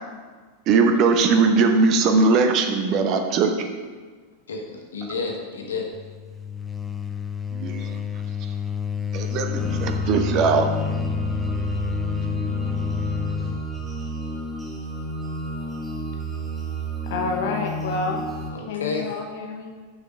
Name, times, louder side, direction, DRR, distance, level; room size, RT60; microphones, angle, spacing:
voice 1, 0.7-3.7 7.5-7.9 9.1-10.6, right 4 dB, 35° right, 5 dB, 0.8 m, -20 dB
voice 2, 4.5-5.9 18.5-19.1, left 4 dB, 65° left, 1 dB, 1.4 m, -30 dB
sound 1, 5.9-13.7, left 8 dB, 10° left, 0.5 m, -29 dB
sound 2, 9.6-18.5, right 2 dB, 5° right, 1.2 m, -31 dB
voice 3, 17.1-18.2 18.7-19.7, left 3 dB, 50° left, 2 dB, 1.2 m, -28 dB
6.8 x 5.0 x 6.0 m, 1.5 s
figure-of-eight pair, 90°, 0 cm